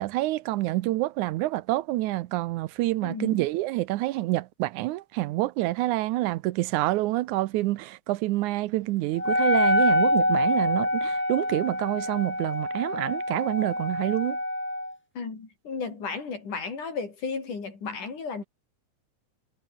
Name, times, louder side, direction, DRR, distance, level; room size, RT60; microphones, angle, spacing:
voice 1, 0.0-14.4, right 17 dB, 80° right, 2.1 m, -27 dB
voice 2, 3.0-3.4 15.2-18.4, left 5 dB, 85° left, 6.8 m, -34 dB
Wind instrument woodwind instrument, 9.2-14.9, left 1 dB, 5° left, 1.6 m, -25 dB
omnidirectional pair, 3.5 m